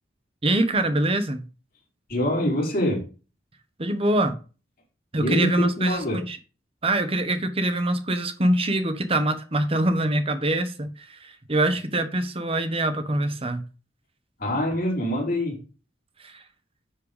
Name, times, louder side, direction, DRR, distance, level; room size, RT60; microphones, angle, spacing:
voice 1, 0.4-1.4 3.8-4.4 5.1-6.0 6.3-6.4 6.8-13.6 16.2-16.4, right 1 dB, 30° right, 1.3 m, -24 dB
voice 2, 2.1-3.0 5.2-6.2 14.4-15.6, left 1 dB, 50° left, 4.5 m, -25 dB
10.0 x 4.6 x 5.2 m
head